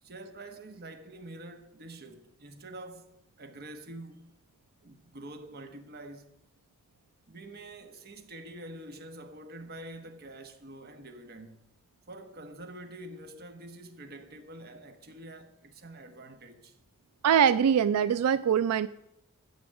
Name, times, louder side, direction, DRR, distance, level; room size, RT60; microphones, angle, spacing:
voice 1, 0.0-4.3 4.8-6.3 7.3-11.7 12.1-16.8, right 1 dB, 45° right, 1.1 m, -46 dB
voice 2, 17.2-18.9, right 8 dB, 85° right, 0.3 m, -23 dB
9.9 x 6.9 x 7.9 m
head